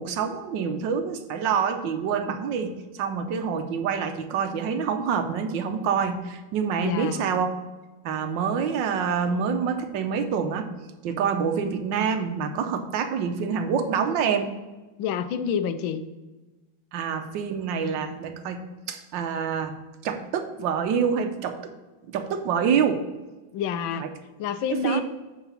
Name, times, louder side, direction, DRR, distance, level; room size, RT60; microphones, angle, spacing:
voice 1, 0.0-7.5 8.0-10.7 11.0-14.5 16.9-19.7 20.0-21.6 22.1-23.1 24.0-24.1 24.7-25.0, right 6 dB, 70° right, 6 dB, 1.4 m, -26 dB
voice 2, 6.8-7.3 15.0-16.0 23.5-24.1 24.4-25.0, left 7 dB, 80° left, 11 dB, 1.4 m, -28 dB
8.6 x 4.0 x 5.7 m, 1.2 s
omnidirectional pair, 2.2 m